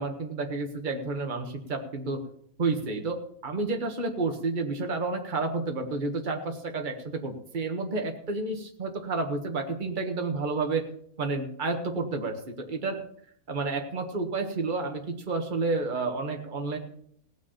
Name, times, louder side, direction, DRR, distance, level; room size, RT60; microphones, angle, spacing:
voice 1, 0.0-2.2 2.6-10.8 11.2-13.0 13.5-16.8, right 3 dB, 35° right, 3 dB, 1.6 m, -30 dB
18.0 x 6.2 x 7.3 m, 0.65 s
omnidirectional pair, 1.6 m